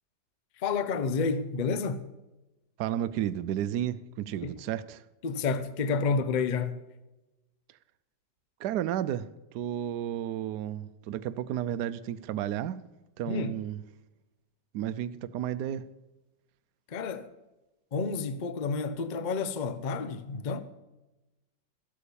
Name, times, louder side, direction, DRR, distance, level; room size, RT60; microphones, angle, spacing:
voice 1, 0.6-2.0 4.4-4.6 5.2-6.8 13.3-13.5 16.9-17.3 17.9-20.6, left 4 dB, 50° left, 0.5 m, -30 dB
voice 2, 2.8-5.0 8.6-12.8 13.2-13.8 14.7-15.8, right 11 dB, 70° right, 1.2 m, -32 dB
14.5 x 8.5 x 6.9 m
omnidirectional pair, 1.9 m